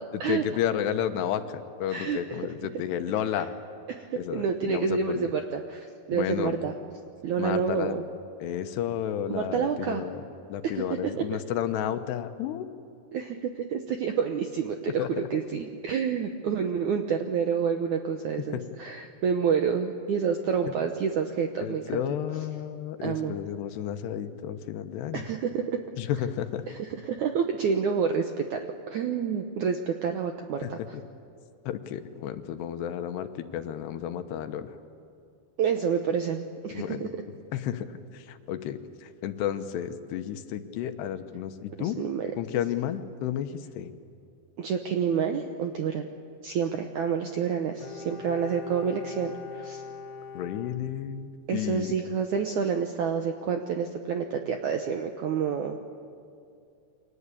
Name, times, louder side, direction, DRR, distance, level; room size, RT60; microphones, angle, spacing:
voice 1, 0.1-3.5 4.1-5.3 6.1-6.6 7.4-8.0 8.4-10.2 10.5-12.7 15.0-15.3 18.5-18.6 21.6-25.2 26.0-26.7 30.6-31.0 31.7-34.7 36.7-42.0 42.4-43.9 50.3-51.9, left 10 dB, 75° left, 8 dB, 3.1 m, -32 dB
voice 2, 1.9-2.4 3.9-6.7 7.2-8.0 9.3-10.0 10.7-10.8 13.1-22.0 23.0-23.4 25.1-25.8 26.7-30.8 35.6-37.1 41.8-42.3 44.6-46.1 46.4-49.8 51.5-55.8, right 6 dB, 75° right, 5 dB, 1.8 m, -28 dB
Bowed string instrument, 47.8-51.5 51.8-51.9, left 6 dB, 50° left, 1.8 m, -42 dB
29.5 x 24.0 x 8.4 m, 2.4 s
omnidirectional pair, 4.9 m